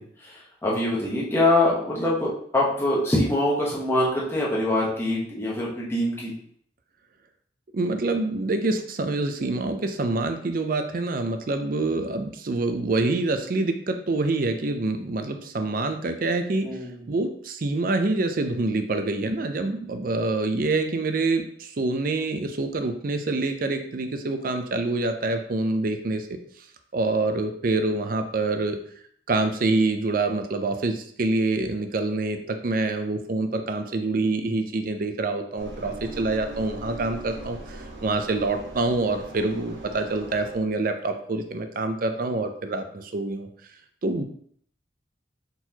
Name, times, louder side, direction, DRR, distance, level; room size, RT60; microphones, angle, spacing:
voice 1, 0.0-6.3 16.6-16.9, left 1 dB, 15° left, -5 dB, 1.0 m, -24 dB
voice 2, 7.7-16.8 17.1-26.3 26.9-28.8 29.3-43.5 44.0-44.2, right 2 dB, 50° right, 7 dB, 0.5 m, -26 dB
Engine, 35.6-40.6, right 2 dB, 80° right, 1.1 m, -40 dB
4.5 x 3.9 x 2.8 m, 0.63 s
head